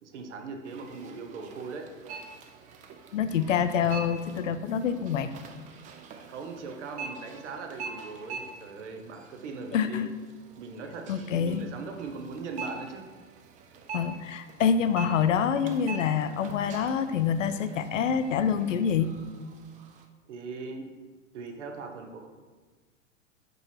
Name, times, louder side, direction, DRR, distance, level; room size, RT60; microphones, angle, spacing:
voice 1, 0.0-1.9 6.3-10.1 10.6-13.1 20.3-20.9 21.3-22.3, right 4 dB, 65° right, 4 dB, 1.0 m, -40 dB
sound 1, 0.6-20.1, right 4 dB, 20° right, 0.4 m, -45 dB
voice 2, 3.1-5.3 9.7-10.1 11.1-11.6 13.9-19.2, left 7 dB, 75° left, 11 dB, 0.5 m, -26 dB
5.3 x 4.3 x 4.4 m, 1.4 s
figure-of-eight pair, 95°, 39 cm